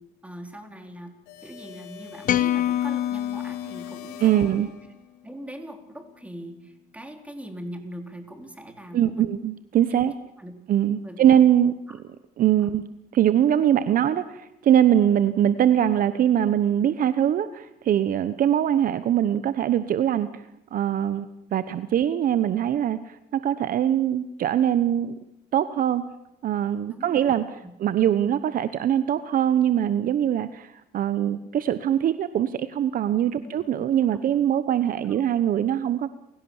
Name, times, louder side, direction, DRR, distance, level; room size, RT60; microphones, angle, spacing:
voice 1, 0.2-1.1 1.4-4.7 5.2-9.3 9.9-10.0 10.4-10.5 11.0-11.4 26.9-27.3 27.6-27.7 33.3-33.5 34.1-34.2, equal, 10° right, 5 dB, 3.9 m, -41 dB
sound 1, 1.3-5.2, left 10 dB, 90° left, 3.5 m, -44 dB
sound 2, 2.3-4.6, left 12 dB, 55° left, 0.8 m, -26 dB
voice 2, 4.2-4.7 8.9-10.1 10.7-11.7 12.4-12.9 13.1-20.4 20.7-25.2 25.5-26.0 26.4-27.4 27.8-36.1, right 10 dB, 55° right, 13 dB, 1.0 m, -22 dB
29.5 x 17.0 x 7.2 m, 0.85 s
cardioid pair, 110°, 17 cm